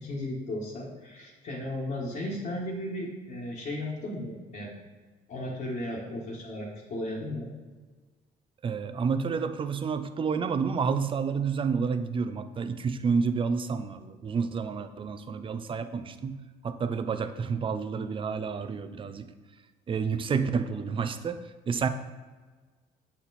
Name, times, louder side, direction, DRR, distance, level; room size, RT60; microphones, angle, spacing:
voice 1, 0.0-4.7 5.3-7.5, left 1 dB, 50° left, -6 dB, 1.5 m, -35 dB
voice 2, 8.6-19.3 19.9-21.9, right 5 dB, 30° right, 10 dB, 0.5 m, -30 dB
7.7 x 4.3 x 4.2 m, 1.4 s
cardioid pair, 110°, 17 cm